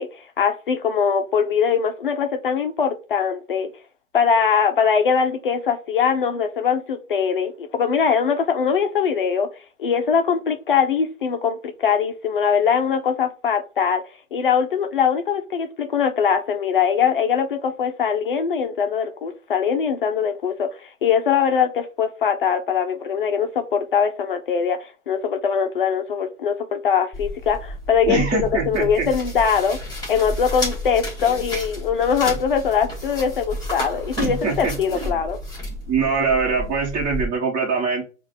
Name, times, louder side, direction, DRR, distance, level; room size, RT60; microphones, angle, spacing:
voice 1, 0.0-3.7 4.1-9.5 9.8-14.0 14.3-29.8 30.1-35.4, left 7 dB, 45° left, 0.6 m, -22 dB
sound 1, 27.1-37.3, left 1 dB, 10° left, 2.4 m, -31 dB
voice 2, 28.1-29.1 31.3-31.4 34.2-35.1 35.9-38.0, right 5 dB, 25° right, 1.3 m, -23 dB
4.8 x 2.4 x 4.3 m
figure-of-eight pair, 125°, 39 cm